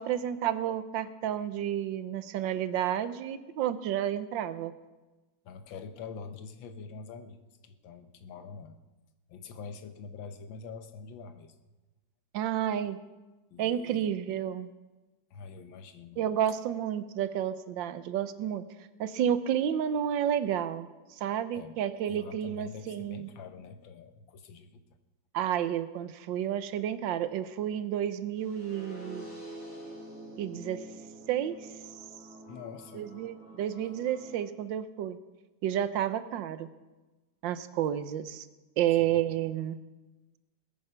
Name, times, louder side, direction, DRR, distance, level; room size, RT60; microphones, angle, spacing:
voice 1, 0.0-4.7 12.3-13.0 13.6-14.7 16.2-18.6 19.0-20.9 21.2-23.3 25.3-29.2 30.4-30.8 31.3-31.6 32.9-35.2 35.6-36.7 37.4-38.5 38.8-39.8, right 10 dB, 80° right, 13 dB, 1.5 m, -30 dB
voice 2, 5.5-7.4 7.6-8.8 9.3-11.6 13.5-14.1 15.3-16.3 21.5-21.7 22.1-24.8 32.5-33.1 39.0-39.2, left 5 dB, 90° left, 8 dB, 1.7 m, -45 dB
sound 1, 28.4-34.3, right 1 dB, 45° left, 7.0 m, -46 dB
20.0 x 9.1 x 5.6 m, 1.2 s
omnidirectional pair, 2.0 m